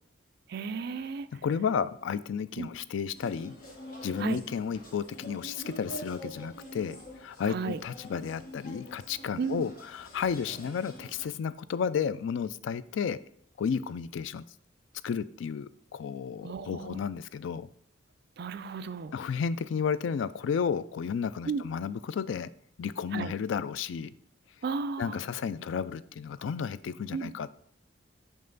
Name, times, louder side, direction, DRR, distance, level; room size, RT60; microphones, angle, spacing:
voice 1, 0.5-1.3 2.6-2.7 4.2-4.4 7.5-7.8 9.4-9.6 16.4-17.0 18.4-19.1 21.5-21.6 23.1-23.3 24.6-25.2 27.1-27.3, right 5 dB, 55° right, 12 dB, 0.4 m, -34 dB
voice 2, 1.3-3.5 4.0-13.2 13.6-14.4 15.0-17.7 19.1-22.5 22.8-24.1 25.0-27.6, left 6 dB, 70° left, 16 dB, 0.3 m, -32 dB
sound 1, 3.1-11.2, equal, 45° left, 1.6 m, -46 dB
5.7 x 5.4 x 3.9 m, 0.63 s
head